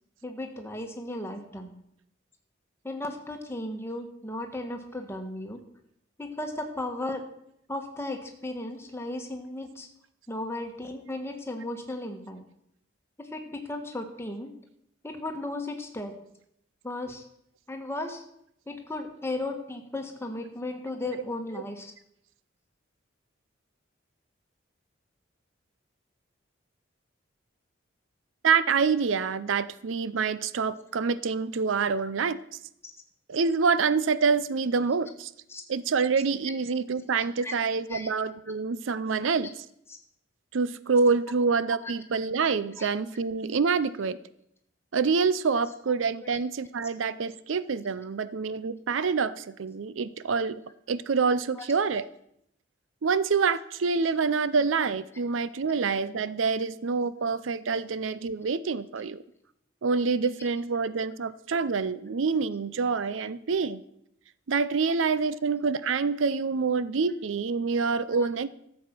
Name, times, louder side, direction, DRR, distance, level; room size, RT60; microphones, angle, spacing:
voice 1, 0.2-1.8 2.8-5.6 6.2-7.2 7.7-9.9 10.3-12.4 13.2-14.5 15.0-16.1 16.8-17.2 17.7-18.2 18.7-21.9 35.5-35.6 37.4-37.5 37.9-38.1 39.9-40.0 41.8-41.9 42.8-42.9 51.6-51.7 68.1-68.3, left 2 dB, 10° left, 4 dB, 1.4 m, -35 dB
voice 2, 28.4-32.4 33.3-35.3 35.7-39.5 40.5-44.2 44.9-50.6 50.9-52.0 53.0-59.2 59.8-63.8 64.5-68.5, right 5 dB, 75° right, 16 dB, 0.5 m, -26 dB
13.0 x 7.6 x 6.0 m, 0.75 s
head